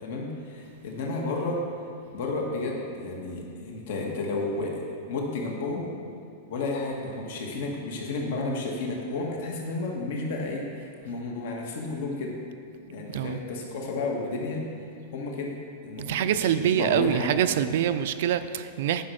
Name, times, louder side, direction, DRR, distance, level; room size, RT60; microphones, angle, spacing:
voice 1, 0.0-1.6 2.1-5.9 6.5-12.3 12.9-14.7 15.1-15.5 15.8-17.3, left 3 dB, 65° left, 0 dB, 1.7 m, -32 dB
voice 2, 13.1-13.4 16.0-19.1, right 10 dB, 65° right, 12 dB, 0.5 m, -25 dB
10.0 x 5.7 x 6.4 m, 2.4 s
supercardioid pair, 155°, 0 cm